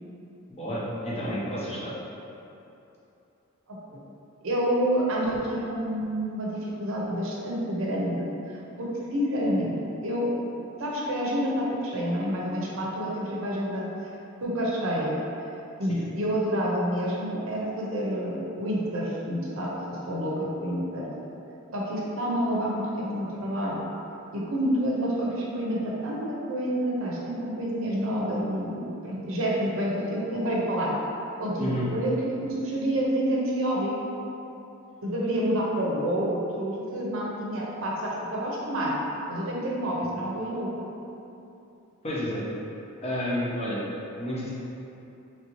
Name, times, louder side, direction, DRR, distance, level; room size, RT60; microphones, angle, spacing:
voice 1, 0.5-1.9 15.9-16.0 31.6-31.9 42.0-42.4 43.0-43.8 44.1-44.5, equal, 30° left, -8 dB, 0.7 m, -30 dB
voice 2, 4.4-9.7 10.0-10.4 10.8-13.8 14.4-15.2 15.8-21.1 21.7-23.8 24.3-28.8 29.0-30.9 31.4-34.0 35.0-39.0 39.3-40.7, equal, 70° right, -4 dB, 0.6 m, -28 dB
3.2 x 2.7 x 2.9 m, 2.9 s
head